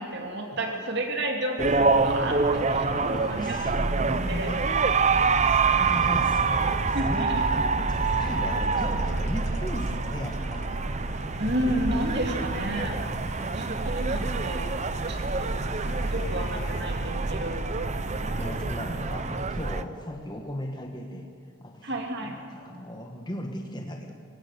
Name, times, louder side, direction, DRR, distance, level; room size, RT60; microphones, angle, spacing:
voice 1, 0.0-3.6 4.0-4.5 6.9-7.4 11.4-13.0 13.3-14.7 15.1-15.5 16.1-17.6 21.8-22.4, right 1 dB, 50° right, 2 dB, 2.4 m, -31 dB
voice 2, 0.5-1.0 2.4-4.6 4.9-7.3 7.8-10.7 15.3-16.8 17.9-21.3 21.6-24.1, left 1 dB, 20° left, 2 dB, 1.3 m, -38 dB
sound 1, 1.6-19.8, right 4 dB, 30° right, 0.6 m, -26 dB
sound 2, 1.7-19.4, left 3 dB, 40° left, 0.8 m, -43 dB
23.0 x 17.0 x 6.7 m, 2.4 s
head